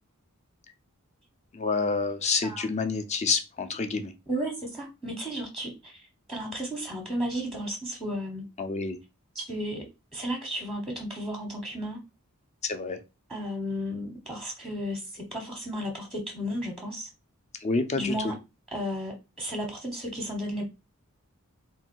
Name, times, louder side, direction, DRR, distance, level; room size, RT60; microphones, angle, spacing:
voice 1, 1.5-4.1 8.6-9.0 12.6-13.0 17.6-18.3, left 4 dB, 30° left, 8 dB, 0.5 m, -28 dB
voice 2, 4.3-8.5 9.3-9.8 10.1-12.0 13.3-17.1 17.9-18.3 18.7-20.6, equal, ahead, 1 dB, 0.8 m, -33 dB
3.5 x 2.3 x 4.4 m, 0.26 s
head